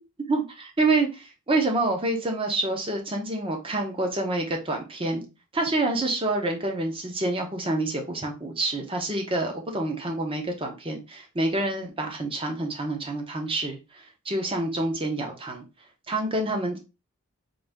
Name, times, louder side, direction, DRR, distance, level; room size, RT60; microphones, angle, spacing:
voice 1, 0.3-5.2 5.5-15.6 16.1-16.8, right 2 dB, 25° right, 3 dB, 0.8 m, -27 dB
3.9 x 2.7 x 3.4 m, 0.28 s
head